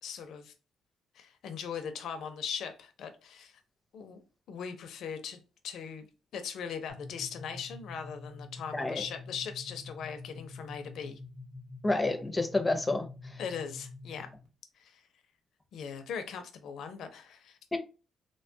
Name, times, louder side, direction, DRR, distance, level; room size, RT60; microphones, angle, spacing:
voice 1, 0.0-0.5 1.1-3.6 3.9-4.2 4.5-6.1 6.3-11.2 13.4-14.3 14.7-15.1 15.7-17.6, left 7 dB, 75° left, 0.4 m, -40 dB
sound 1, 6.9-14.5, left 3 dB, 65° right, 0.9 m, -47 dB
voice 2, 11.8-13.4 17.7-17.8, left 2 dB, 15° left, 0.5 m, -29 dB
3.1 x 2.2 x 2.6 m
cardioid pair, 95°, 0 cm